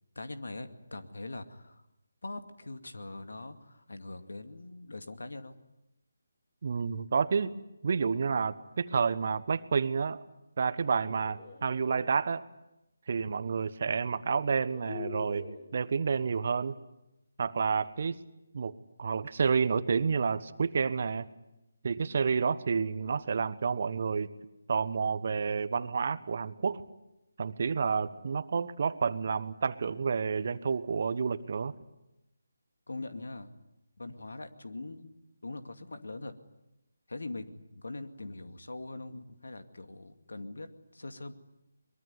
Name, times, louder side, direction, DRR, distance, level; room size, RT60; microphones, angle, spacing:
voice 1, 0.2-1.8 2.2-5.5 32.9-33.6 34.0-35.1 35.4-36.3 37.1-40.7 40.9-41.3, left 2 dB, 70° left, 8 dB, 2.3 m, -42 dB
voice 2, 6.6-7.5 7.8-10.2 10.6-12.4 13.1-16.7 17.4-18.2 18.5-21.3 21.8-24.3 24.7-26.8 27.4-31.7, right 5 dB, 50° right, 14 dB, 1.2 m, -30 dB
sound 1, 10.9-12.1 13.6-13.7 14.3-15.7, left 7 dB, 40° left, 2.4 m, -46 dB
23.0 x 22.5 x 9.6 m, 0.90 s
figure-of-eight pair, 155°, 0 cm